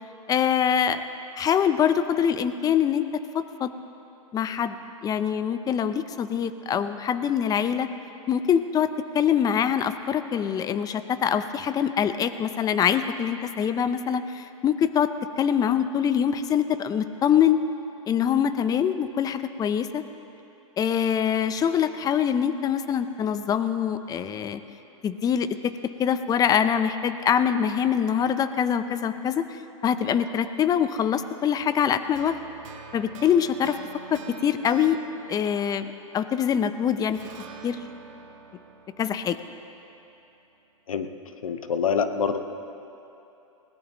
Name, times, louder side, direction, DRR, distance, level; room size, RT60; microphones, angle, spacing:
voice 1, 0.3-1.0 1.4-3.0 3.3-3.7 4.3-4.8 5.0-7.9 8.3-8.9 9.1-17.6 18.1-20.0 20.8-24.6 25.0-25.7 26.0-29.5 29.8-32.4 32.9-33.8 34.1-35.0 35.3-35.9 36.1-37.2 37.6-37.9 39.0-39.4, left 8 dB, 20° left, 11 dB, 0.6 m, -24 dB
sound 1, 32.2-36.7 37.2-40.2, right 6 dB, 70° right, 1.5 m, -46 dB
voice 2, 41.4-42.4, left 6 dB, 85° left, 9 dB, 0.9 m, -25 dB
20.5 x 17.5 x 3.0 m, 2.9 s
hypercardioid pair, 120°, 17 cm